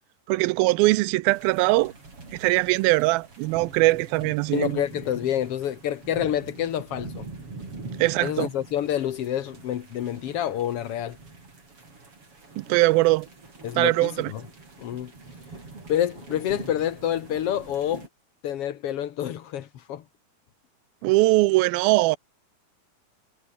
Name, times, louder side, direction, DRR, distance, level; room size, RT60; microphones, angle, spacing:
voice 1, 0.3-1.9 2.3-4.8 8.0-8.5 12.6-13.3 13.8-14.3 21.0-22.2, right 21 dB, 85° right, 2.4 m, -21 dB
sound 1, 1.3-18.1, right 3 dB, 35° right, 6.9 m, -44 dB
voice 2, 4.5-7.3 8.2-11.2 13.6-14.4 14.8-15.1 15.9-18.1 18.4-20.0, left 11 dB, 65° left, 1.5 m, -28 dB
omnidirectional pair, 4.3 m